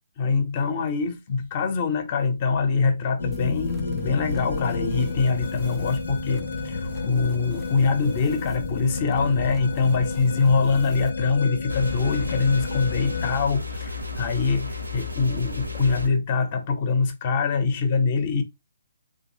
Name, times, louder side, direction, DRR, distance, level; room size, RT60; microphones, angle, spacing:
voice 1, 0.2-18.4, left 4 dB, 35° left, 0.7 m, -24 dB
sound 1, 3.2-13.4, left 4 dB, 65° left, 0.7 m, -31 dB
sound 2, 3.3-11.1, right 3 dB, ahead, 0.4 m, -42 dB
sound 3, 11.7-16.1, left 3 dB, 85° right, 0.8 m, -33 dB
3.2 x 2.4 x 2.9 m
figure-of-eight pair, 135°, 0 cm